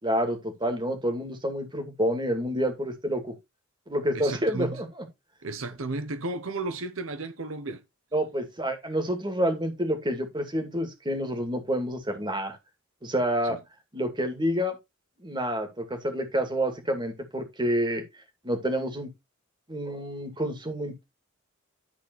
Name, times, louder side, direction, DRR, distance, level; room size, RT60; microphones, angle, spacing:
voice 1, 0.0-3.3 3.9-5.1 8.1-12.6 13.0-13.6 13.9-14.8 15.2-18.0 18.4-19.1 19.7-21.0, equal, 20° right, 2.5 m, -28 dB
voice 2, 4.1-4.8 5.4-7.8 13.4-13.6, right 2 dB, 75° right, 1.0 m, -33 dB
12.0 x 4.2 x 4.6 m
head